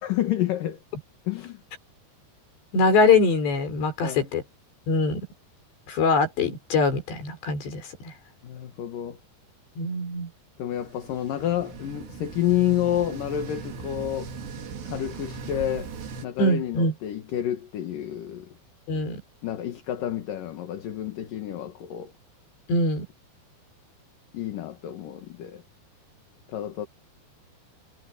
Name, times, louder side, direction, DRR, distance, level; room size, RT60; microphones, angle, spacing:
voice 1, 0.0-0.8 1.3-1.6 4.0-4.3 8.4-9.2 10.6-14.3 14.9-15.9 16.2-18.5 19.4-22.1 24.3-25.6 26.5-26.9, left 11 dB, 60° left, 3.0 m, -29 dB
voice 2, 2.7-4.4 4.9-5.3 5.9-8.1 9.8-10.3 16.4-16.9 18.9-19.2 22.7-23.1, left 3 dB, 80° left, 8.0 m, -23 dB
sound 1, 10.7-16.3, right 4 dB, 80° right, 5.2 m, -38 dB
omnidirectional pair, 4.9 m